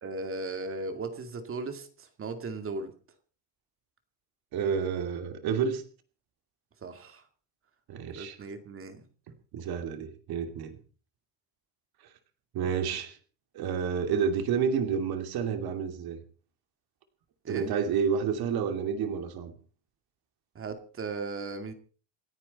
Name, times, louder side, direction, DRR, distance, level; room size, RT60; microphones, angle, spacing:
voice 1, 0.0-2.9 6.8-7.2 8.1-9.0 17.4-17.7 20.5-21.7, right 3 dB, 30° right, 7 dB, 2.3 m, -37 dB
voice 2, 4.5-5.8 7.9-8.4 9.5-10.8 12.5-13.2 13.5-16.2 17.5-19.5, right 6 dB, 55° right, 7 dB, 2.8 m, -29 dB
28.0 x 9.8 x 4.3 m, 0.39 s
cardioid pair, 165°, 44 cm